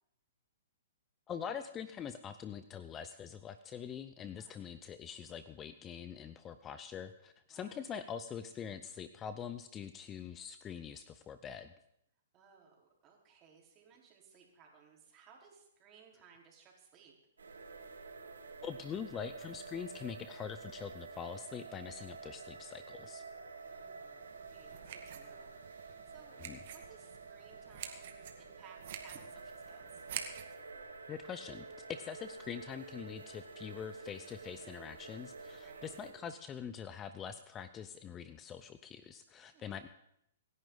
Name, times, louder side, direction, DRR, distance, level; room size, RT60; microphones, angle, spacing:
voice 1, 1.3-11.7 18.6-23.2 26.4-26.6 31.1-39.9, left 8 dB, 20° left, 11 dB, 0.7 m, -44 dB
voice 2, 4.4-4.7 7.5-7.8 12.3-17.1 23.7-30.0 35.6-35.9 39.5-39.8, right 6 dB, 30° right, -1 dB, 4.3 m, -61 dB
sound 1, 17.4-36.1, right 4 dB, 90° right, 5.2 m, -50 dB
sound 2, 24.2-30.5, right 9 dB, 60° right, 2.0 m, -48 dB
26.5 x 10.5 x 4.0 m, 0.77 s
hypercardioid pair, 130°, 0 cm